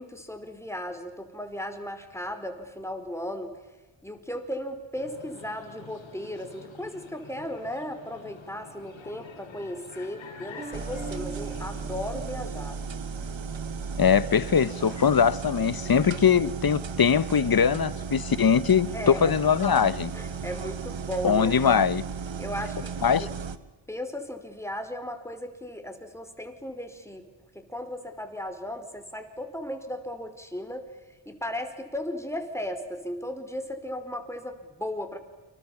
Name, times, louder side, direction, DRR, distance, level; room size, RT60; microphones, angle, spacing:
voice 1, 0.0-3.6 4.0-12.8 18.9-19.4 20.1-21.6 22.4-23.3 23.9-27.3 27.5-35.2, left 1 dB, 5° left, 4.8 m, -36 dB
sound 1, 4.9-15.2, left 5 dB, 90° left, 4.2 m, -47 dB
sound 2, 10.6-13.2, right 4 dB, 20° right, 2.1 m, -43 dB
sound 3, 10.7-23.6, right 6 dB, 85° right, 1.7 m, -35 dB
voice 2, 14.0-20.1 21.2-22.0 23.0-23.3, left 7 dB, 50° left, 1.1 m, -22 dB
29.5 x 26.0 x 7.3 m
wide cardioid pair, 80°, 44 cm